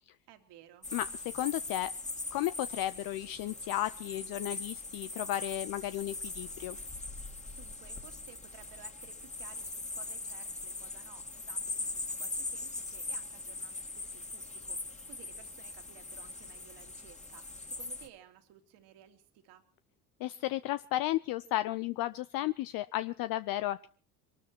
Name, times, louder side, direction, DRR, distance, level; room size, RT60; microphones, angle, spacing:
voice 1, 0.3-0.9 7.5-14.8 15.1-19.6, right 11 dB, 60° right, 8 dB, 2.6 m, -57 dB
sound 1, 0.8-18.1, left 3 dB, 15° left, 2.3 m, -41 dB
voice 2, 0.9-1.9 2.3-6.8 20.2-23.9, left 15 dB, 50° left, 13 dB, 0.7 m, -34 dB
23.5 x 12.5 x 4.4 m, 0.43 s
hypercardioid pair, 65°, 46 cm